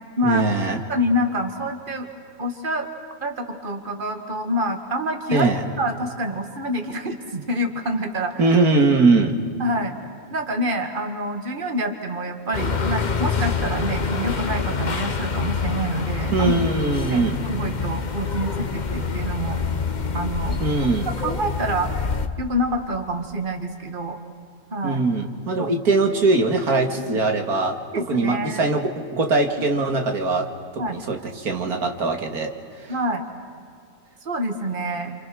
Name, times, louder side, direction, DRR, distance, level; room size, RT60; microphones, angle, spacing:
voice 1, 0.2-0.8 5.3-5.7 8.4-9.4 16.3-17.4 20.6-21.1 24.8-30.5 30.9-32.5, right 3 dB, 75° right, 4 dB, 2.4 m, -21 dB
voice 2, 0.9-2.1 2.4-2.9 3.2-8.6 9.6-10.0 10.3-16.5 17.1-19.6 20.1-20.6 21.2-21.9 22.4-24.2 24.7-25.0 25.6-25.7 27.0-27.2 27.9-28.7 30.8-31.0 32.9-33.3 34.3-35.2, equal, 35° right, 5 dB, 2.1 m, -27 dB
sound 1, 12.5-22.3, left 5 dB, 35° left, 1.0 m, -26 dB
29.0 x 27.0 x 6.3 m, 2.4 s
omnidirectional pair, 1.6 m